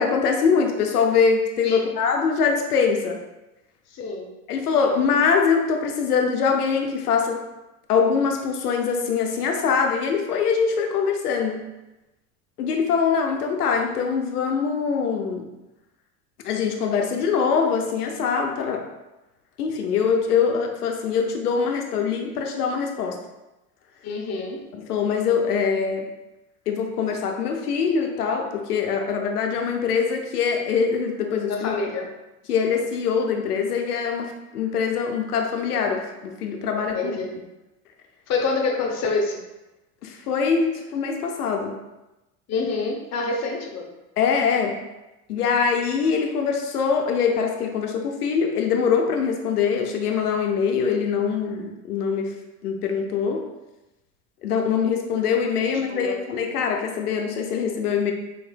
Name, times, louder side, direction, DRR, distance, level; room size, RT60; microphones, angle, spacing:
voice 1, 0.0-3.2 4.5-7.4 7.9-11.7 12.6-15.5 16.4-18.8 19.6-23.2 24.7-26.1 26.7-31.7 32.5-37.2 40.0-41.7 44.2-44.8 45.3-52.4 52.6-53.4 54.4-58.1, left 6 dB, 90° left, 3 dB, 0.6 m, -23 dB
voice 2, 3.9-4.3 24.0-24.6 31.5-32.1 36.9-37.3 38.3-39.4 42.5-43.9 55.6-56.2, left 3 dB, 35° left, 1 dB, 0.8 m, -27 dB
4.2 x 3.1 x 2.2 m, 0.99 s
hypercardioid pair, 80°, 45 cm